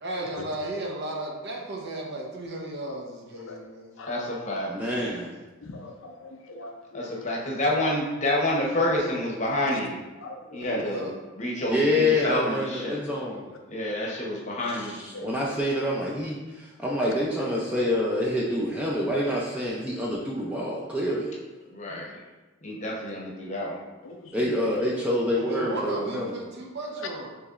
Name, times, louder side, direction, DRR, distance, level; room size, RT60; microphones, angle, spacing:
voice 1, 0.0-3.9 10.8-11.1 13.3-13.4 25.3-27.3, right 1 dB, 55° right, -1 dB, 0.8 m, -35 dB
voice 2, 4.1-4.7 6.9-9.9 10.5-11.1 11.4-13.0 13.7-14.9 21.7-22.1 22.6-23.8, left 1 dB, 35° left, -2 dB, 0.8 m, -28 dB
voice 3, 4.7-5.4 11.7-13.5 15.0-21.3 24.3-26.3, left 1 dB, 5° right, -4 dB, 0.4 m, -27 dB
voice 4, 5.6-7.2 9.7-9.8 10.2-10.4 10.7-10.8 15.1-15.3 16.9-17.1 21.9-22.0 22.7-22.8 24.0-24.6, left 2 dB, 65° left, 3 dB, 0.5 m, -41 dB
6.7 x 3.0 x 2.4 m, 1.2 s
head